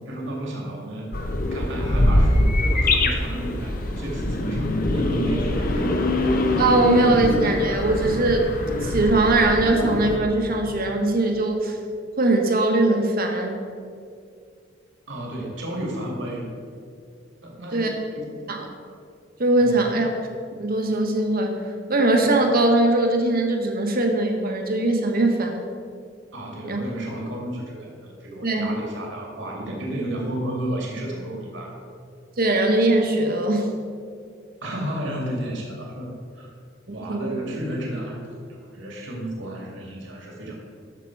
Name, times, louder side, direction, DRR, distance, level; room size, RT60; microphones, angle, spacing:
voice 1, 0.1-1.1 1.5-5.9 15.1-16.5 17.4-18.4 19.6-19.9 26.3-31.7 34.6-36.5 36.9-40.5, right 1 dB, 65° right, -2 dB, 2.3 m, -32 dB
sound 1, 1.1-10.2, left 1 dB, 45° left, 0.9 m, -23 dB
voice 2, 6.6-8.5 8.8-11.8 12.2-13.6 17.7-17.9 18.5-18.7 19.4-20.1 20.6-25.7 26.7-26.8 28.4-28.7 32.4-33.7 36.9-37.4, right 2 dB, 50° right, 3 dB, 1.3 m, -21 dB
13.5 x 5.9 x 4.8 m, 2.3 s
head